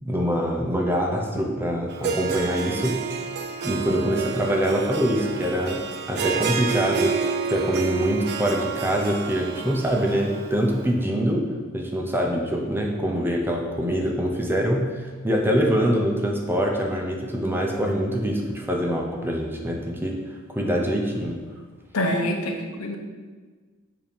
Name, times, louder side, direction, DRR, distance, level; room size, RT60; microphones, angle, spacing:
voice 1, 0.0-3.0 3.6-7.1 7.5-11.4 11.7-20.2 20.5-21.4, equal, 10° right, 1 dB, 0.6 m, -24 dB
Harp, 1.9-10.9, right 5 dB, 50° right, 0.4 m, -29 dB
voice 2, 21.9-23.0, left 1 dB, 90° left, 2 dB, 0.8 m, -25 dB
7.4 x 2.9 x 5.2 m, 1.4 s
head